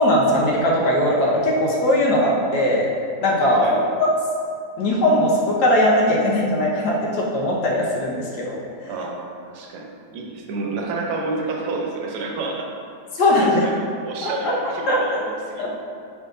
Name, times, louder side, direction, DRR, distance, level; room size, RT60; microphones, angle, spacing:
voice 1, 0.0-2.9 3.2-3.8 4.8-8.6 13.1-13.6 14.2-14.5 14.9-15.0 15.6-15.7, left 1 dB, 85° left, -4 dB, 1.4 m, -19 dB
voice 2, 8.9-12.7 13.4-15.8, right 3 dB, 90° right, 0 dB, 1.2 m, -29 dB
5.5 x 3.6 x 2.5 m, 2.4 s
omnidirectional pair, 1.7 m